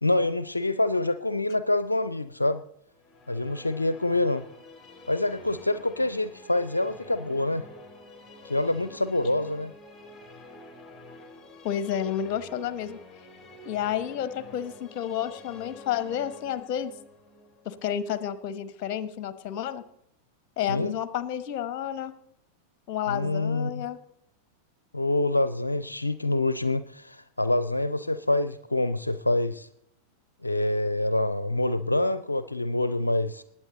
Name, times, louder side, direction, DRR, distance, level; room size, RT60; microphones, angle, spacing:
voice 1, 0.0-2.6 3.3-4.4 5.1-7.7 8.4-9.7 20.7-20.9 23.1-23.8 24.9-29.7 30.4-33.4, left 2 dB, 80° left, 14 dB, 0.5 m, -26 dB
sound 1, 2.9-19.0, left 2 dB, 15° left, 2.5 m, -48 dB
voice 2, 11.6-13.0 13.6-16.9 17.6-19.8 20.6-22.1 22.9-24.0, left 10 dB, 40° left, 14 dB, 1.1 m, -30 dB
19.5 x 8.6 x 4.0 m, 0.73 s
figure-of-eight pair, 90°, 0 cm